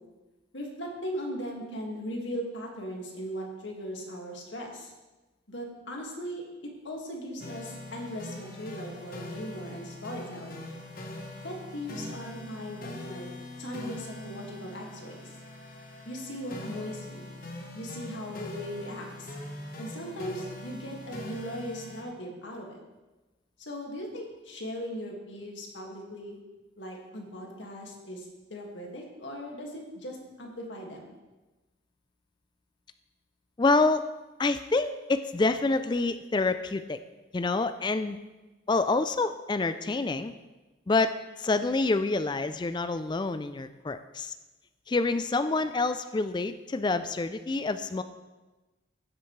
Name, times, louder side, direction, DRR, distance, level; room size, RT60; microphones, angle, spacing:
voice 1, 0.5-4.9 5.5-10.7 11.4-13.3 13.6-15.4 16.1-17.3 17.7-19.3 19.8-22.8 23.6-26.4 26.8-31.1, equal, 70° left, 0 dB, 2.0 m, -38 dB
sound 1, 7.4-22.0, left 1 dB, 45° left, 1.3 m, -42 dB
voice 2, 33.6-34.0 34.4-37.0 37.3-38.2 38.7-40.3 40.9-44.3 44.9-48.0, left 3 dB, 25° left, 11 dB, 0.3 m, -27 dB
16.0 x 7.8 x 3.2 m, 1.1 s
head